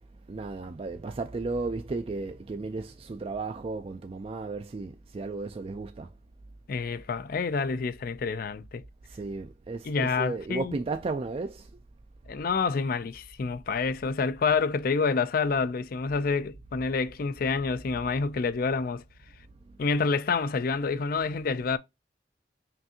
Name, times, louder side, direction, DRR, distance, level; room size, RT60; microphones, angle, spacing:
voice 1, 0.3-6.1 9.1-11.7, right 3 dB, 30° right, 0.3 m, -34 dB
voice 2, 6.7-8.8 9.8-10.8 12.3-19.0 19.8-21.8, left 4 dB, 50° left, 0.4 m, -28 dB
5.7 x 2.6 x 2.7 m
head